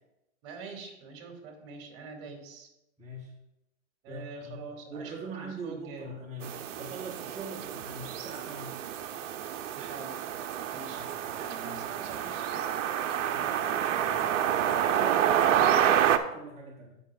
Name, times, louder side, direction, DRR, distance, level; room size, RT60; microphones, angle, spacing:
voice 1, 0.4-2.7 4.0-6.1 9.7-10.2 10.7-11.1 11.3-12.7, right 4 dB, 45° right, 3 dB, 2.1 m, -45 dB
voice 2, 3.0-3.3 4.1-4.6 4.9-6.5 6.8-8.7 10.8-11.8 13.3-17.0, right 3 dB, 15° right, -4 dB, 1.2 m, -43 dB
sound 1, 6.4-16.2, right 10 dB, 65° right, 0.7 m, -28 dB
16.5 x 5.5 x 2.4 m, 0.89 s
hypercardioid pair, 125°, 40 cm